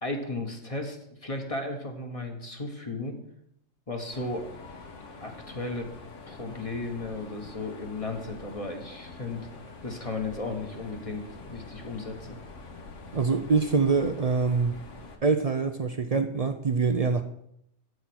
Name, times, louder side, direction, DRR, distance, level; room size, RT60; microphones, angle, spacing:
voice 1, 0.0-3.2 3.9-4.5 5.2-5.9 6.3-9.4 9.8-12.4, left 2 dB, 25° left, 3 dB, 1.4 m, -35 dB
Mechanisms, 4.1-15.2, left 3 dB, 65° left, 1.6 m, -45 dB
voice 2, 13.1-14.8 15.2-17.2, right 4 dB, 60° right, 7 dB, 0.3 m, -24 dB
8.3 x 7.8 x 6.2 m, 0.76 s
omnidirectional pair, 1.4 m